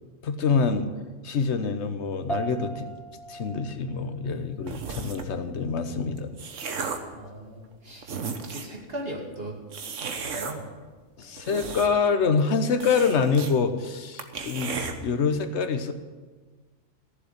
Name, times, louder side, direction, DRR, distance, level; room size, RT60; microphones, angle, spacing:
voice 1, 0.2-0.9 1.2-2.9 3.3-6.3 11.2-15.9, left 5 dB, 60° left, 8 dB, 1.3 m, -26 dB
sound 1, 2.3-11.9, right 3 dB, ahead, 0.8 m, -42 dB
sound 2, 4.7-5.3 6.0-7.2 7.7-7.8 8.0-8.8 9.7-10.5 11.2-12.1 12.4-12.5 12.8-13.5 13.9-14.0 14.2-14.9, right 5 dB, 65° right, 1.5 m, -34 dB
voice 2, 7.1-8.1 8.5-9.5 10.3-10.6, right 1 dB, 45° right, 0 dB, 2.8 m, -37 dB
15.0 x 7.4 x 10.0 m, 1.4 s
omnidirectional pair, 1.4 m